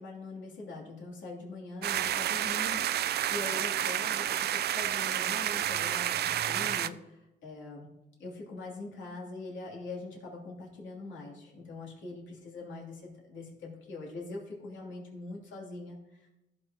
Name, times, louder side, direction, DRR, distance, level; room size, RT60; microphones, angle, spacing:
voice 1, 0.0-7.9 8.2-16.3, left 3 dB, 70° left, -3 dB, 2.9 m, -43 dB
sound 1, 1.8-6.9, right 11 dB, 55° right, 0.4 m, -30 dB
15.0 x 6.4 x 2.9 m, 0.95 s
cardioid pair, 90°, 20 cm